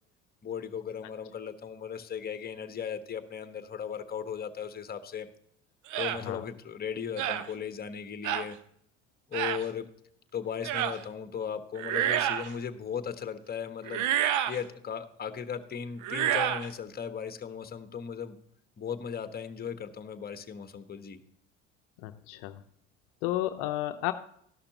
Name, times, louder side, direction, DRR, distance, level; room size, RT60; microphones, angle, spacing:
voice 1, 0.4-5.3 6.0-8.6 9.3-9.9 10.3-14.1 14.5-18.4 18.8-21.2, left 7 dB, 25° left, 10 dB, 1.2 m, -37 dB
sound 1, 5.9-6.2 7.2-7.5 8.2-8.5 9.3-9.6 10.6-11.0 11.8-12.5 13.9-14.6 16.0-16.7, right 11 dB, 55° right, 0.9 m, -28 dB
voice 2, 22.0-22.6 23.2-24.1, left 15 dB, 60° left, 8 dB, 0.7 m, -32 dB
13.0 x 11.5 x 2.9 m, 0.69 s
hypercardioid pair, 65°, 36 cm